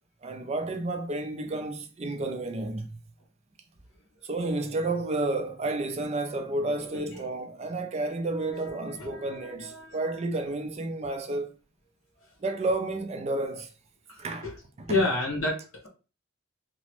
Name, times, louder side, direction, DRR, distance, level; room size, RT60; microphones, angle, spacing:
voice 1, 0.2-3.0 4.2-11.5 12.4-13.7 14.2-14.5 14.8-15.0, right 2 dB, 30° right, 0.3 m, -31 dB
voice 2, 8.5-10.0 14.1-14.5 14.9-15.9, left 2 dB, 80° left, 1.1 m, -31 dB
2.9 x 2.0 x 3.0 m
head